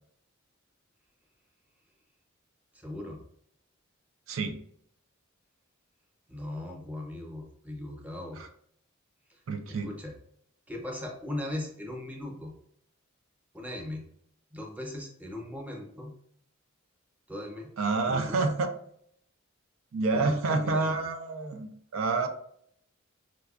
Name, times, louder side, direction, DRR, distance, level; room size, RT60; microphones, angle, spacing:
voice 1, 2.7-3.2 6.3-8.4 9.3-9.4 9.7-10.1 10.7-12.5 13.5-14.0 14.5-16.1 17.3-17.7 18.1-18.4 20.1-21.0, left 1 dB, 10° right, 1 dB, 0.6 m, -39 dB
voice 2, 9.5-9.9 17.8-18.7 19.9-22.3, right 3 dB, 80° right, 6 dB, 0.4 m, -28 dB
4.7 x 2.2 x 2.3 m, 0.66 s
head